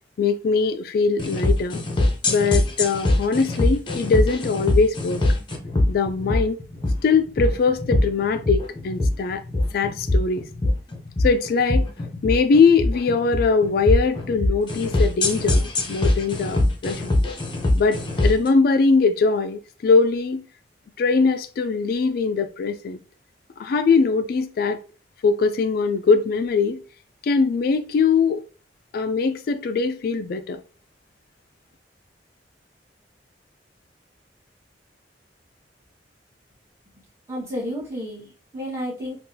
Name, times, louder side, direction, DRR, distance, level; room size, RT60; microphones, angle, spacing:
voice 1, 0.2-1.8 2.3-5.2 5.9-6.6 7.0-9.4 9.7-10.5 11.2-11.9 12.2-17.1 17.8-20.4 21.0-23.0 23.6-24.8 25.2-26.8 27.2-28.4 28.9-30.6, left 4 dB, 55° left, 0.3 m, -21 dB
sound 1, 1.2-18.5, left 1 dB, 30° left, 0.7 m, -23 dB
voice 2, 37.3-39.2, equal, 15° right, 1.4 m, -31 dB
3.7 x 2.4 x 2.7 m
head